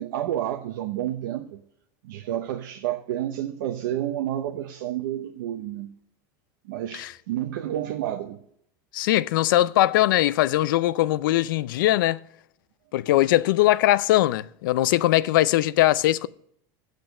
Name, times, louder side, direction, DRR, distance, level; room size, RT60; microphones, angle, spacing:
voice 1, 0.0-1.6 2.0-5.9 6.7-8.4, right 12 dB, 85° right, 0.8 m, -30 dB
voice 2, 8.9-12.2 12.9-16.3, left 15 dB, 85° left, 0.4 m, -21 dB
8.4 x 6.5 x 6.6 m
supercardioid pair, 145°, 11 cm